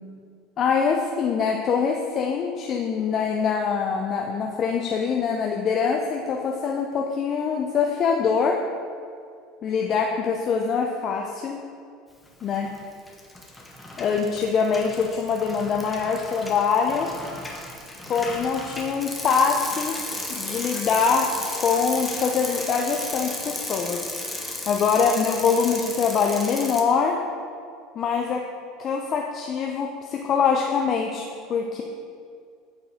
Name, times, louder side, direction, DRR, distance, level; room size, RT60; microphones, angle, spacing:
voice 1, 0.6-8.6 9.6-11.6 12.4-12.7 14.0-17.1 18.1-20.0 20.3-24.1 24.7-27.2 28.0-28.5 28.8-31.8, left 6 dB, 45° left, 2 dB, 0.5 m, -24 dB
Bicycle, 12.4-12.8 13.1-26.8, left 1 dB, 10° left, 1.1 m, -34 dB
8.6 x 4.6 x 3.6 m, 2.3 s
supercardioid pair, 95°, 0 cm